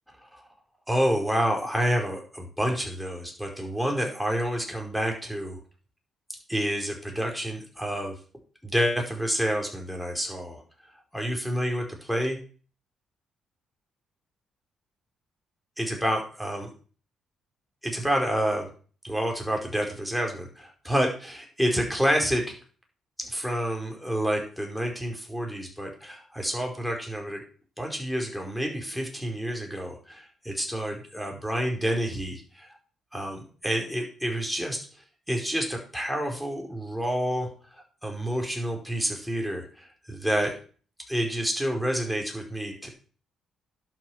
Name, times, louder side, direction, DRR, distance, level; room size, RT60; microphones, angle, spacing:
voice 1, 0.9-5.6 6.5-8.1 8.6-10.6 11.1-12.4 15.8-16.7 17.8-18.7 19.0-22.5 23.2-27.4 27.8-32.7 33.1-34.8 35.3-40.5 41.1-42.9, equal, ahead, 1 dB, 4.8 m, -28 dB
11.5 x 7.8 x 6.3 m, 0.40 s
cardioid pair, 90°, 0 cm